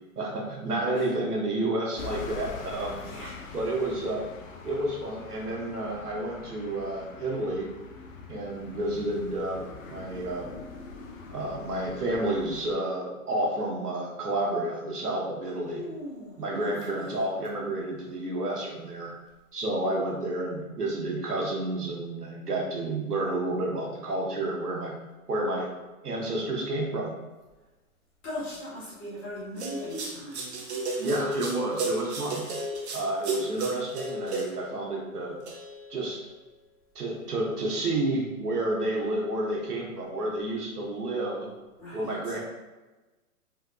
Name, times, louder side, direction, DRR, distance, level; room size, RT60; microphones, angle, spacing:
voice 1, 0.2-3.0 3.5-4.2 4.6-7.7 8.3-10.5 11.3-15.8 16.4-19.1 19.5-25.0 25.3-25.7 26.0-27.1 31.0-32.5 32.9-35.4 35.9-36.2 36.9-41.5 41.9-42.4, right 1 dB, 85° right, -2 dB, 1.1 m, -30 dB
sound 1, 2.0-12.7, left 5 dB, 60° left, 0.6 m, -43 dB
voice 2, 3.0-3.3 15.5-17.1 28.2-30.6 41.8-42.4, equal, 15° left, -8 dB, 0.6 m, -39 dB
sound 2, 29.6-34.7 35.5-35.9, right 2 dB, 45° right, 0.7 m, -33 dB
3.7 x 2.2 x 2.5 m, 1.1 s
hypercardioid pair, 135°, 45 cm